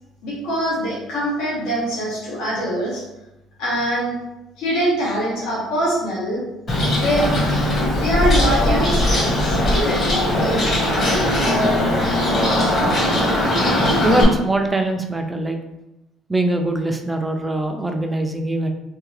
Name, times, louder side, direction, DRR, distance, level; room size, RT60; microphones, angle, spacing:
voice 1, 0.2-3.0 3.6-4.1 4.6-6.4 7.0-7.4 8.0-9.6, right 1 dB, 80° left, -6 dB, 1.3 m, -23 dB
Bird, 6.7-14.2, left 1 dB, 45° left, 1.4 m, -19 dB
voice 2, 14.0-15.6 16.3-18.7, right 1 dB, 10° right, 4 dB, 0.5 m, -22 dB
3.6 x 2.8 x 3.2 m, 0.94 s
cardioid pair, 115°, 0 cm